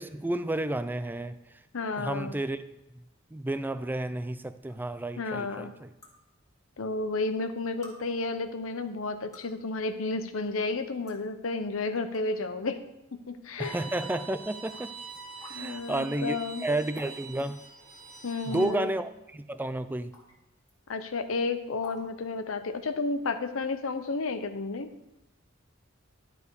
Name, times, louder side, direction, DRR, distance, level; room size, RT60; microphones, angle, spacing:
voice 1, 0.0-1.4 2.0-2.6 2.9-3.0 3.3-5.9 13.6-15.0 15.4-17.6 18.5-20.2, right 1 dB, 10° right, 12 dB, 0.4 m, -31 dB
voice 2, 1.7-2.3 5.2-5.7 6.8-12.8 13.3-13.8 15.5-16.6 18.2-18.9 20.9-24.9, left 3 dB, 80° left, 10 dB, 0.7 m, -32 dB
sound 1, 4.7-4.8 6.0-6.1 7.1-7.2 7.8-8.0 9.1-9.6 10.5-10.6 11.1-11.2 11.9-12.2 12.7-12.8 13.8-13.9 14.7-14.9 15.4-15.6 16.9-17.1 17.4-17.5 18.5-18.9 20.1-20.3 20.7-20.8 21.8-22.0, left 2 dB, 15° left, 1.7 m, -49 dB
Bowed string instrument, 13.6-18.6, right 4 dB, 50° right, 1.7 m, -44 dB
11.5 x 5.2 x 4.7 m, 0.96 s
head